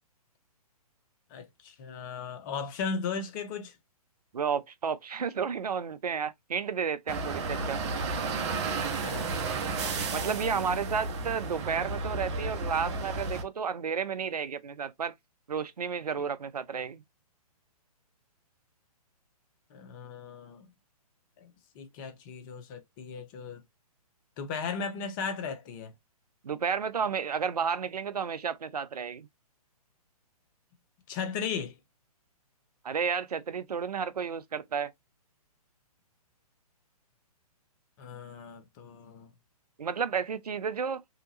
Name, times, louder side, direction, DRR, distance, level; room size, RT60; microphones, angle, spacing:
voice 1, 1.3-3.7 8.7-9.3 19.7-20.7 21.4-23.6 24.4-25.9 31.1-31.8 38.0-39.3, left 5 dB, 30° left, 0.7 m, -37 dB
voice 2, 4.3-7.8 10.1-15.1 15.5-17.0 26.4-29.3 32.8-34.9 39.8-41.0, right 6 dB, 75° right, 0.6 m, -32 dB
sound 1, 7.1-13.4, right 3 dB, 45° right, 1.0 m, -32 dB
3.4 x 2.8 x 2.6 m
figure-of-eight pair, 130°, 20 cm